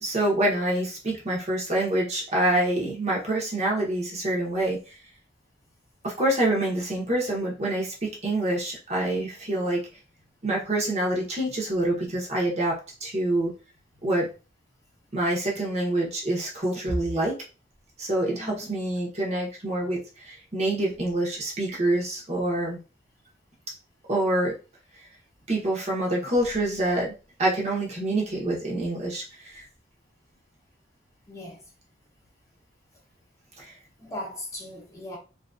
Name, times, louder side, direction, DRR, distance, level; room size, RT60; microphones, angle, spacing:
voice 1, 0.0-4.8 6.0-9.8 10.4-13.5 14.0-14.3 15.1-17.4 18.0-20.0 20.3-22.8 24.1-24.5 25.5-27.1 27.4-29.6 33.6-33.7, right 1 dB, 35° right, 0.8 m, -26 dB
voice 2, 18.3-18.7 31.3-31.7 34.0-35.2, left 1 dB, 15° left, 0.7 m, -39 dB
2.7 x 2.6 x 2.3 m
head